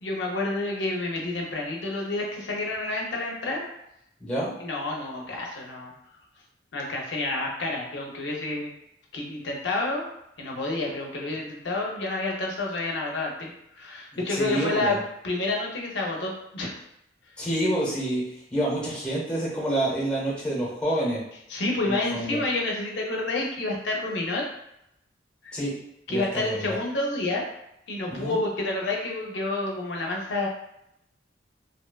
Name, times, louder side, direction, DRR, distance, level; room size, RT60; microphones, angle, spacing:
voice 1, 0.0-3.7 4.6-5.9 6.7-8.7 9.1-10.1 10.4-15.0 15.2-16.8 21.5-24.5 25.4-25.5 26.1-27.4 27.9-30.5, left 2 dB, 75° left, -1 dB, 0.6 m, -29 dB
voice 2, 4.2-4.5 14.1-15.0 17.4-18.2 18.5-21.2 21.9-22.4 25.5-25.7 26.1-26.8 28.1-28.4, right 1 dB, 5° left, -5 dB, 0.8 m, -28 dB
2.8 x 2.1 x 2.2 m, 0.80 s
head